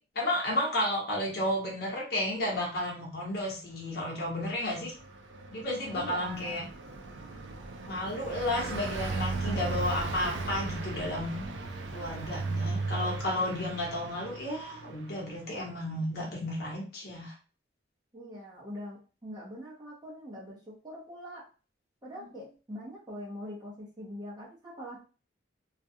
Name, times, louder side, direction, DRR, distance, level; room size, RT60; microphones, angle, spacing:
voice 1, 0.1-4.9 5.5-6.6 7.8-11.5 11.9-17.3 22.1-22.2, left 1 dB, 55° left, -3 dB, 0.9 m, -32 dB
Car passing by, 4.3-15.3, right 3 dB, 75° right, 0.4 m, -36 dB
voice 2, 5.9-6.6 13.4-13.5 18.1-21.5 22.0-25.0, equal, 20° right, -5 dB, 0.7 m, -43 dB
2.4 x 2.2 x 2.6 m, 0.35 s
head